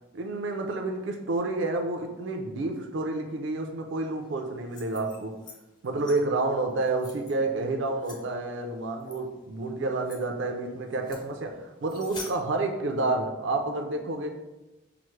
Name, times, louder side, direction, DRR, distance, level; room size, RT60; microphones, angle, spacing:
voice 1, 0.1-5.3 5.8-11.5 11.8-14.3, right 2 dB, 60° right, 4 dB, 0.4 m, -29 dB
sound 1, 4.6-5.6 5.8-6.2 6.7-7.3 8.0-8.2 9.0-9.2 9.6-9.7 10.0-10.2 10.9-11.3 11.8-12.3, left 3 dB, 20° left, 0.5 m, -45 dB
5.8 x 2.0 x 3.1 m, 1.1 s
head